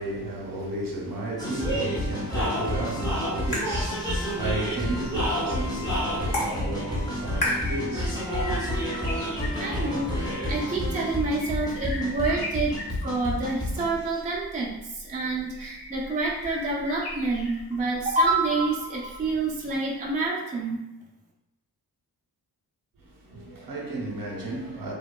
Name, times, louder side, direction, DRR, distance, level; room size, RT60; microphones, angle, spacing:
voice 1, 0.0-8.7 23.0-24.9, right 2 dB, 55° right, 0.8 m, -33 dB
sound 1, 1.4-13.9, equal, 10° left, 0.7 m, -29 dB
sound 2, 2.6-8.6, left 1 dB, 55° left, 1.1 m, -35 dB
sound 3, 4.1-19.9 20.2-20.3, left 1 dB, 80° left, 0.7 m, -41 dB
voice 2, 9.6-10.2 10.5-12.8 13.0-14.7 15.0-20.8, right 3 dB, 20° right, 0.4 m, -27 dB
2.7 x 2.2 x 2.2 m
cardioid pair, 80°, 40 cm